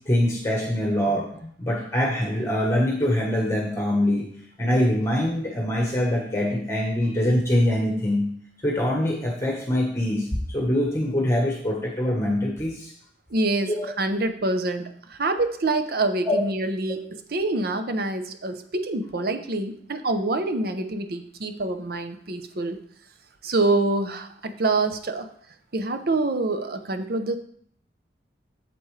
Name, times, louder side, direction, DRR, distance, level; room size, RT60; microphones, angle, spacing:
voice 1, 0.1-4.3 4.6-8.3 8.6-12.9 13.7-13.9 16.2-16.4, left 1 dB, 15° left, -1 dB, 1.2 m, -24 dB
voice 2, 13.3-22.8 23.4-25.3 25.7-27.4, right 2 dB, 55° right, 9 dB, 0.7 m, -26 dB
8.4 x 7.7 x 3.2 m, 0.62 s
head